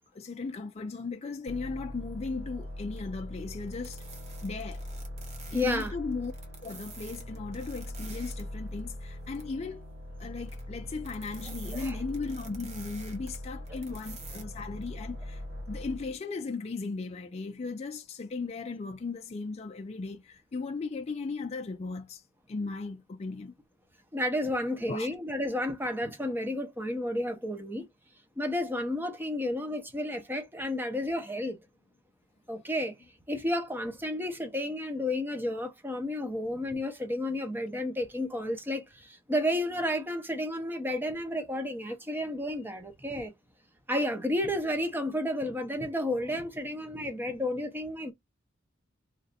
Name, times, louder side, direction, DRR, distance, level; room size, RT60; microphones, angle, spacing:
voice 1, 0.1-4.0 4.4-4.8 5.5-6.3 6.6-9.9 10.2-15.4 15.7-22.2 22.5-23.5 24.9-25.1, left 4 dB, 35° left, 0.4 m, -37 dB
sound 1, 1.5-16.2, left 1 dB, 85° right, 1.7 m, -41 dB
sound 2, 3.0-3.1 3.6-8.4 8.8-9.5 10.4-10.6 10.9-14.4 14.8-14.9, right 4 dB, 35° right, 1.2 m, -49 dB
voice 2, 5.5-5.9 11.7-12.0 13.7-13.8 24.1-27.9 28.4-31.6 32.5-32.9 33.3-43.3 43.9-48.1, left 1 dB, 10° right, 0.8 m, -32 dB
3.2 x 2.6 x 4.0 m
head